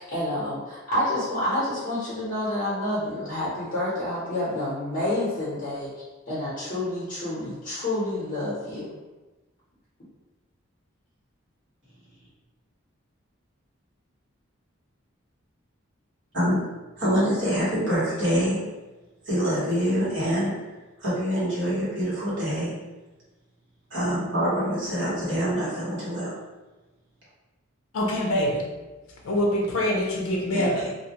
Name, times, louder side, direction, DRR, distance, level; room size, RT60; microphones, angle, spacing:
voice 1, 0.0-5.9 6.3-8.9, left 1 dB, 40° left, -10 dB, 0.7 m, -28 dB
voice 2, 17.0-18.6 19.2-20.5 21.0-22.7 23.9-26.3 30.5-30.9, equal, 60° right, -9 dB, 1.3 m, -25 dB
voice 3, 27.9-28.7 29.2-30.9, left 1 dB, 80° left, 0 dB, 0.5 m, -25 dB
2.4 x 2.2 x 2.8 m, 1.2 s
head